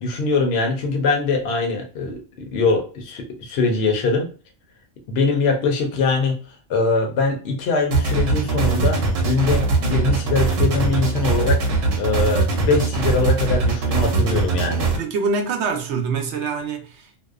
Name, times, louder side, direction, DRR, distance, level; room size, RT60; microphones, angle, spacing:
voice 1, 0.0-4.3 5.1-11.7 12.0-14.9, left 4 dB, 65° left, 0.8 m, -22 dB
sound 1, 7.9-15.0, right 3 dB, 90° right, 1.0 m, -21 dB
voice 2, 15.0-17.2, right 4 dB, 70° right, 0.8 m, -25 dB
2.6 x 2.0 x 2.3 m
omnidirectional pair, 1.3 m